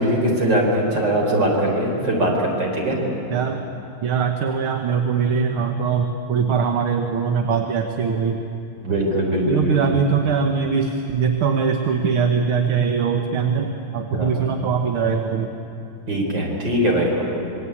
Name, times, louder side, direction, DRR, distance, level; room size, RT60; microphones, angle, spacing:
voice 1, 0.0-3.1 8.8-9.8 14.1-14.3 16.1-17.2, right 1 dB, 55° right, -1 dB, 5.4 m, -21 dB
voice 2, 4.0-8.4 9.5-15.5, right 6 dB, 80° right, 4 dB, 2.1 m, -21 dB
26.5 x 22.0 x 8.7 m, 2.7 s
omnidirectional pair, 2.3 m